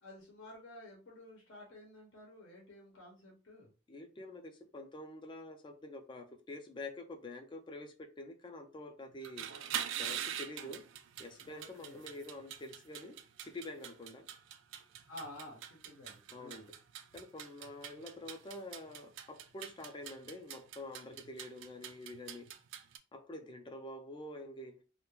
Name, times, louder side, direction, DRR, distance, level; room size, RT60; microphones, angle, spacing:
voice 1, 0.0-3.7 11.4-12.0 15.1-16.7, left 1 dB, 65° left, 0.7 m, -52 dB
voice 2, 3.9-9.5 10.0-10.9 11.2-14.3 16.3-16.7 17.1-22.4 23.1-24.8, left 1 dB, 25° left, 0.3 m, -47 dB
sound 1, 9.1-23.0, right 10 dB, 65° right, 0.3 m, -44 dB
2.2 x 2.1 x 2.9 m
head